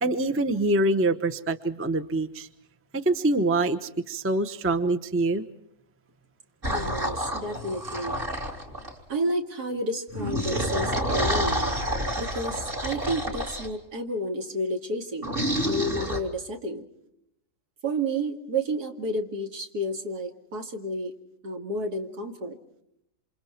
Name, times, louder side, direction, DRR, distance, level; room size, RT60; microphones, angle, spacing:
voice 1, 0.0-2.5 2.9-5.4, right 2 dB, 10° right, 9 dB, 0.7 m, -25 dB
sound 1, 6.6-9.0 10.1-13.7 15.2-16.2, equal, 35° right, 3.1 m, -28 dB
voice 2, 6.7-8.2 9.1-11.7 12.2-15.3 15.6-16.9 17.8-21.1 21.4-22.6, right 1 dB, 70° right, 4 dB, 2.7 m, -31 dB
28.0 x 27.0 x 4.5 m, 0.77 s
omnidirectional pair, 1.8 m